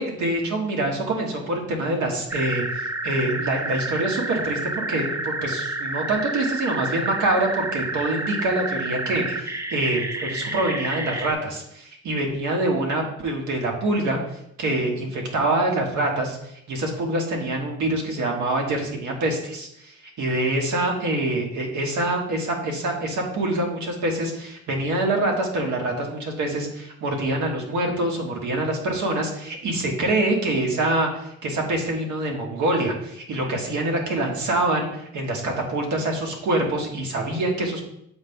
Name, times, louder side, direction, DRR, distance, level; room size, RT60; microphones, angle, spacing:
voice 1, 0.0-14.2 14.6-16.4 16.7-37.8, right 2 dB, 75° right, 1 dB, 1.5 m, -25 dB
sound 1, 2.3-11.3, right 2 dB, 10° right, 0.5 m, -30 dB
7.9 x 5.4 x 2.3 m, 0.76 s
cardioid pair, 90°, 30 cm